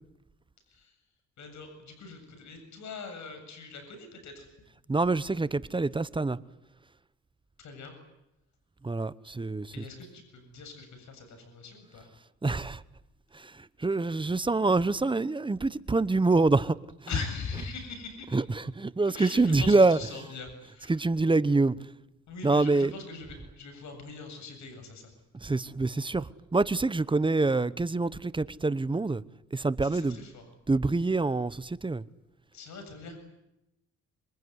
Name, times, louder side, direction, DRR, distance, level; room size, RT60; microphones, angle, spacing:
voice 1, 1.4-4.5 7.6-7.9 9.7-12.1 17.1-18.4 19.1-21.0 22.3-25.1 29.8-30.4 32.5-33.2, left 4 dB, 70° left, 7.7 m, -41 dB
voice 2, 4.9-6.4 8.8-9.7 12.4-12.8 13.3-16.8 18.3-20.0 20.9-21.8 22.4-22.9 25.4-29.2 29.5-30.2 30.7-32.0, right 3 dB, 15° right, 1.0 m, -26 dB
26.5 x 23.0 x 9.8 m
cardioid pair, 90°, 30 cm